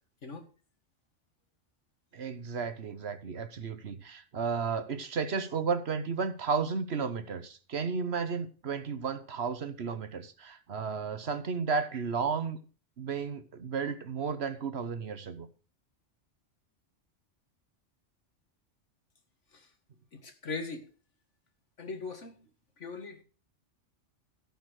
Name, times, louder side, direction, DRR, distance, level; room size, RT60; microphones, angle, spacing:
voice 1, 2.1-12.6 13.0-15.5, right 5 dB, 60° right, 1.3 m, -33 dB
voice 2, 20.1-20.8 21.8-22.4 22.8-23.2, left 4 dB, 75° left, 2.1 m, -39 dB
16.5 x 5.5 x 6.5 m
omnidirectional pair, 1.2 m